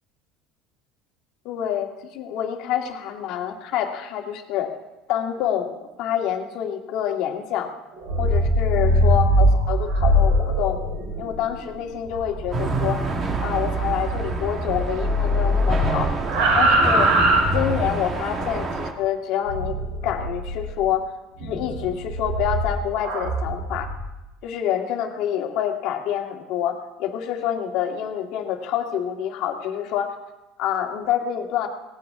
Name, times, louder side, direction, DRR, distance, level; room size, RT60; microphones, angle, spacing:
voice 1, 1.5-4.7 5.1-7.7 8.2-10.8 11.2-13.0 13.4-16.1 16.5-17.1 17.5-19.7 20.0-21.1 21.4-23.9 24.4-30.1 30.6-31.7, left 10 dB, 60° left, 3 dB, 2.0 m, -27 dB
sound 1, 7.9-14.4 14.7-18.1 19.5-20.7 21.4-24.0, equal, 85° right, 6.5 m, -22 dB
sound 2, 12.5-18.9, right 3 dB, 30° right, 1.8 m, -27 dB
17.5 x 17.5 x 3.7 m, 0.99 s
cardioid pair, 150°, 0 cm